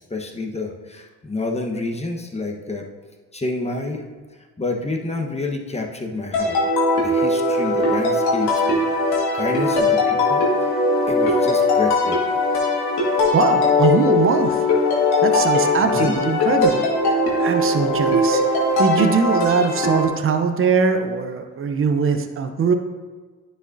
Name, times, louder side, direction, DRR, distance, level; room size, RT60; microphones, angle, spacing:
voice 1, 0.1-2.8 3.3-4.0 4.6-6.6 7.0-10.4 11.1-12.2 15.8-16.2, left 2 dB, 15° left, 2 dB, 1.2 m, -28 dB
sound 1, 6.3-20.1, left 2 dB, 75° left, 1.9 m, -19 dB
voice 2, 13.3-14.6 15.2-18.4 18.8-22.7, right 5 dB, 35° right, 7 dB, 0.8 m, -21 dB
10.0 x 6.1 x 2.7 m, 1.4 s
hypercardioid pair, 55°, 38 cm